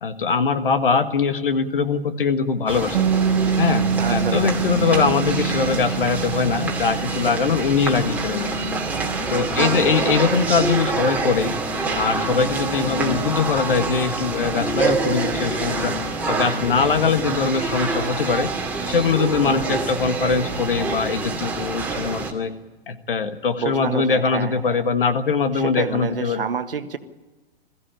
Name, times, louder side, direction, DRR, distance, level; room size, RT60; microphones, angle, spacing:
voice 1, 0.0-3.1 3.6-8.5 9.3-11.5 11.9-15.9 16.3-18.5 18.8-22.5 22.9-26.4, left 5 dB, 65° left, 10 dB, 1.7 m, -22 dB
sound 1, 2.7-22.3, right 3 dB, 5° right, 2.6 m, -26 dB
Bass guitar, 2.9-9.2, right 7 dB, 50° right, 0.8 m, -25 dB
voice 2, 4.0-4.5 9.6-10.0 19.4-19.9 23.6-24.8 25.5-27.0, right 6 dB, 65° right, 10 dB, 1.5 m, -29 dB
21.5 x 15.0 x 9.1 m, 1.2 s
figure-of-eight pair, 110°, 30 cm